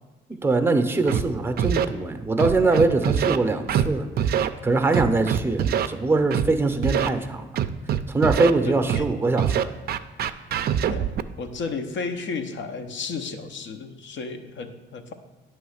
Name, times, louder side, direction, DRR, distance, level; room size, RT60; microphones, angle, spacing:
voice 1, 0.4-7.5 8.1-9.7, right 3 dB, 10° right, 7 dB, 0.6 m, -23 dB
Scratching (performance technique), 1.1-1.2 1.6-1.8 2.4-3.4 3.7-3.9 4.2-4.5 4.9-5.9 6.3-6.5 6.8-7.1 7.6-8.5 8.9-9.0 9.4-11.2, right 9 dB, 50° right, 0.4 m, -23 dB
voice 2, 8.7-9.1 10.9-11.1 11.4-15.1, left 4 dB, 70° left, 7 dB, 0.7 m, -33 dB
9.2 x 3.1 x 6.4 m, 1.2 s
cardioid pair, 90°, 20 cm